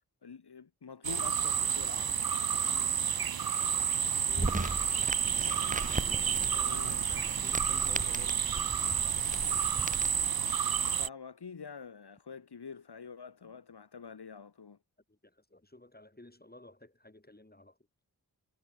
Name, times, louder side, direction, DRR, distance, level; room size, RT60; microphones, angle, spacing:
voice 1, 0.2-2.2 4.2-5.0 6.5-7.1 10.9-14.8, left 6 dB, 80° left, 1.3 m, -47 dB
sound 1, 1.0-11.1, right 7 dB, 65° right, 0.7 m, -30 dB
voice 2, 2.6-3.2 3.6-4.0 5.8-9.3 15.1-17.8, left 1 dB, 25° left, 4.0 m, -55 dB
sound 2, 4.3-10.3, right 2 dB, 20° right, 1.0 m, -38 dB
wide cardioid pair, 45°, 39 cm